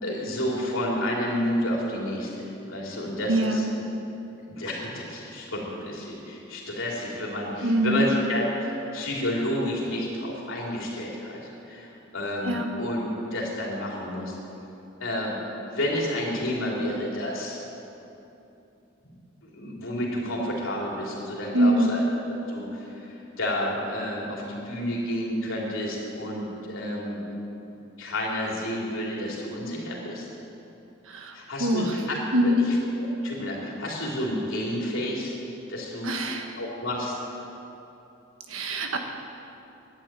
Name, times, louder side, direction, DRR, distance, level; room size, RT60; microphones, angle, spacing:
voice 1, 0.0-3.7 4.4-11.4 11.7-14.4 15.0-15.3 15.6-17.6 19.5-22.0 22.5-27.2 28.0-30.3 31.3-35.3 35.7-36.1 36.6-37.2 38.7-39.0, left 1 dB, 75° left, -3 dB, 3.3 m, -30 dB
voice 2, 3.3-3.7 7.6-8.1 12.4-12.6 21.5-21.9 31.1-31.9 32.3-32.6 36.0-36.5 38.5-39.0, right 1 dB, 80° right, 4 dB, 1.4 m, -24 dB
11.0 x 10.0 x 9.0 m, 2.8 s
head